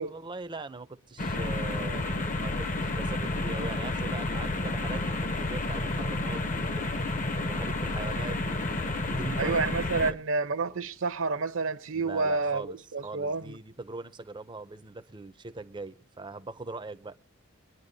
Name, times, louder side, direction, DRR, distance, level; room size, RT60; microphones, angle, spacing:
voice 1, 0.0-7.0 7.4-9.6 10.0-10.2 11.9-17.2, right 3 dB, 20° right, 0.5 m, -41 dB
sound 1, 1.2-10.1, left 2 dB, 35° left, 0.7 m, -30 dB
voice 2, 9.4-12.7 12.9-13.6, right 4 dB, 60° right, 0.8 m, -29 dB
24.5 x 10.5 x 2.7 m
head